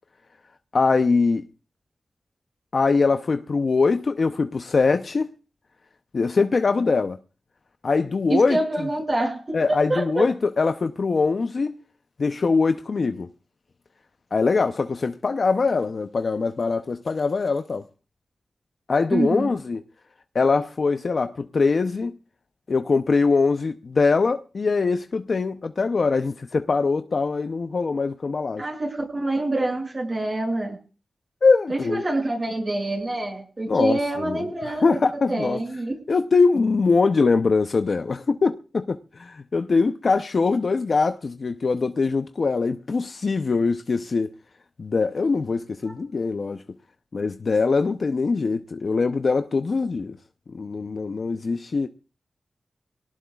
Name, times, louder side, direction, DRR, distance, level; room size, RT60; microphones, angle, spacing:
voice 1, 0.7-1.4 2.7-5.3 6.1-7.2 7.8-8.6 9.5-11.8 12.2-13.3 14.3-17.8 18.9-19.8 20.3-22.2 22.7-28.6 31.4-32.0 33.7-35.6 36.1-44.3 44.8-46.6 47.1-50.2 50.5-51.9, left 4 dB, 65° left, 0.7 m, -22 dB
voice 2, 8.3-10.3 19.1-19.5 28.6-30.8 31.7-35.0 35.3-35.9 45.8-45.9, right 2 dB, 45° right, 6.9 m, -26 dB
23.5 x 18.0 x 2.4 m
cardioid pair, 50°, 0 cm